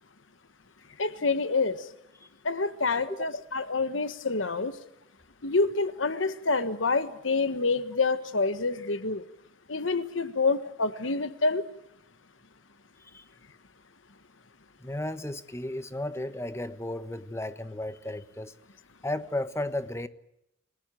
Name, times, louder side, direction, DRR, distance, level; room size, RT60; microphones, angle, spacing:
voice 1, 1.0-1.8 2.4-4.7 5.4-9.2 9.7-11.6, left 3 dB, 85° left, 1.4 m, -27 dB
voice 2, 14.8-18.5 19.0-20.1, left 1 dB, 15° left, 1.2 m, -34 dB
29.0 x 19.0 x 9.1 m
head